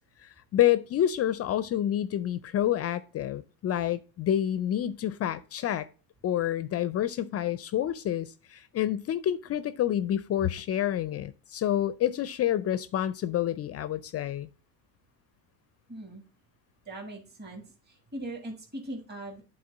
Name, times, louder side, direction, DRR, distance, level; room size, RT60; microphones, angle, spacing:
voice 1, 0.2-5.9 6.2-14.5, left 11 dB, 35° left, 0.4 m, -28 dB
voice 2, 15.9-16.2 16.8-19.4, right 1 dB, 20° right, 1.7 m, -40 dB
8.6 x 4.0 x 3.8 m
supercardioid pair, 95°, 48 cm